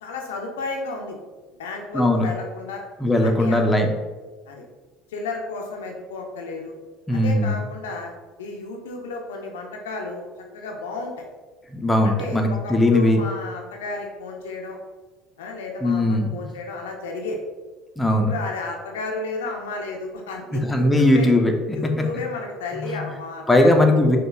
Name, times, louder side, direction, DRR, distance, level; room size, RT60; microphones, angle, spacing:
voice 1, 0.0-1.2 1.6-2.8 3.2-3.6 4.5-4.6 5.1-6.7 7.1-8.1 8.4-10.2 10.5-11.2 12.0-14.8 15.4-17.4 18.1-21.3 21.7-23.9, left 3 dB, 75° left, 2 dB, 0.4 m, -32 dB
voice 2, 1.9-2.3 3.0-3.9 7.1-7.6 11.7-13.2 15.8-16.3 18.0-18.3 20.6-21.8 23.5-24.2, left 1 dB, 10° left, 2 dB, 0.5 m, -19 dB
4.8 x 2.2 x 2.3 m, 1.3 s
figure-of-eight pair, 65°, 0 cm